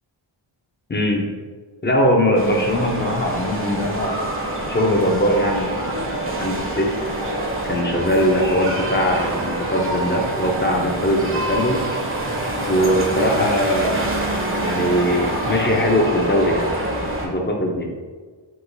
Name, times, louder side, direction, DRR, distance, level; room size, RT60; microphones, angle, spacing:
voice 1, 0.9-1.3 1.8-4.1 4.7-6.9 7.6-11.8 12.7-14.0 14.6-16.7 17.2-17.9, equal, 25° left, 1 dB, 0.5 m, -21 dB
sound 1, 2.4-17.3, right 1 dB, 25° right, 0.6 m, -26 dB
4.8 x 2.8 x 2.6 m, 1.4 s
wide cardioid pair, 90°, 49 cm